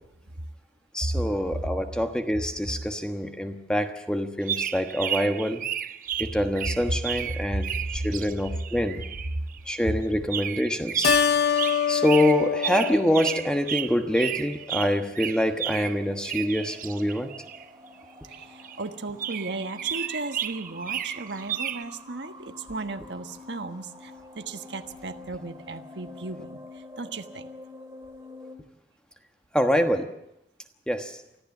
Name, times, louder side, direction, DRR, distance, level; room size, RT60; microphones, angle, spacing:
voice 1, 0.9-5.6 6.2-7.7 7.9-9.0 9.7-11.1 11.9-17.3 29.5-30.1 30.9-31.2, equal, 5° left, 6 dB, 1.2 m, -25 dB
sound 1, 4.4-9.6 10.3-17.6 18.3-18.8 19.2-21.8, right 10 dB, 50° right, 0.8 m, -33 dB
voice 2, 7.4-8.1 18.3-27.5, right 2 dB, 90° right, 7 dB, 1.3 m, -35 dB
Keyboard (musical), 11.0-13.9, left 8 dB, 70° left, 0.8 m, -25 dB
sound 2, 14.2-28.6, left 1 dB, 20° right, 3.2 m, -47 dB
24.5 x 15.0 x 7.3 m, 0.86 s
head